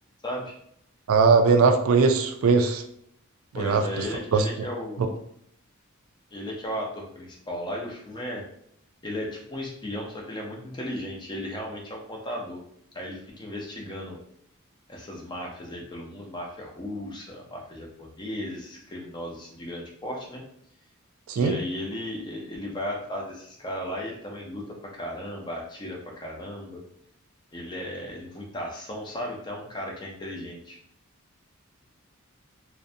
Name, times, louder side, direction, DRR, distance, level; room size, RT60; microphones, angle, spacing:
voice 1, 0.2-0.5 3.5-5.2 6.3-8.4 9.0-12.6 12.9-14.2 14.9-20.4 21.3-26.8 27.5-30.8, left 1 dB, 20° left, -1 dB, 0.5 m, -35 dB
voice 2, 1.1-2.8 3.5-3.8 4.3-4.4 21.3-21.6, right 4 dB, 75° right, 7 dB, 0.3 m, -19 dB
2.5 x 2.1 x 2.6 m, 0.69 s
head